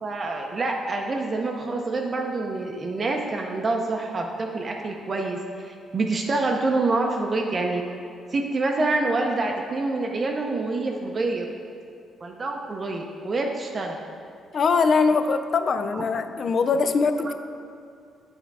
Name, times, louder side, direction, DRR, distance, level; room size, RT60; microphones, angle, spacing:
voice 1, 0.0-7.8 8.3-11.5 12.2-14.0 15.9-16.0, right 3 dB, 40° right, 1 dB, 0.5 m, -26 dB
voice 2, 14.5-17.4, left 4 dB, 50° left, 10 dB, 0.3 m, -22 dB
8.0 x 3.5 x 4.7 m, 2.5 s
cardioid pair, 90°, 0 cm